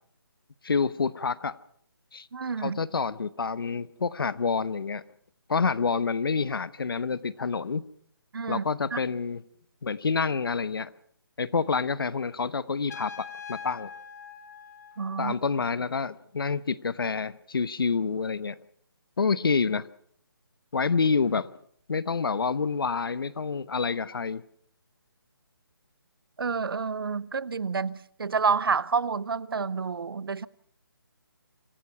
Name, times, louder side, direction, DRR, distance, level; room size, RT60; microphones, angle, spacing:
voice 1, 0.6-1.6 2.1-2.3 2.6-5.0 5.5-7.8 8.5-9.4 9.8-10.9 11.4-13.9 15.2-18.6 19.2-19.9 20.7-21.5 21.9-24.4, left 5 dB, 70° left, 1.0 m, -28 dB
voice 2, 2.3-2.8 8.3-8.6 8.9-9.0 15.0-15.3 26.4-30.5, right 5 dB, 70° right, 0.8 m, -29 dB
Trumpet, 12.9-15.5, left 6 dB, 45° left, 2.2 m, -43 dB
26.5 x 17.5 x 5.7 m
hypercardioid pair, 160°, 13 cm